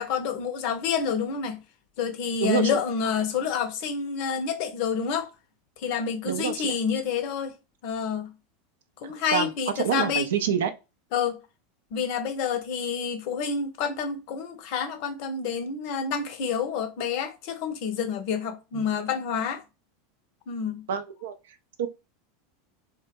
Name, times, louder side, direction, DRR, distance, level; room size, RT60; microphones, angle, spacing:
voice 1, 0.0-1.6 2.0-5.3 5.8-7.5 7.8-8.3 9.0-10.3 11.1-11.4 11.9-19.6 20.5-20.8, left 6 dB, 55° left, 0.5 m, -28 dB
voice 2, 2.4-2.8 6.2-6.8 9.0-9.5 9.8-10.7 18.7-18.9 20.9-21.9, right 8 dB, 70° right, 0.4 m, -28 dB
2.1 x 2.1 x 3.2 m
figure-of-eight pair, 85°, 0 cm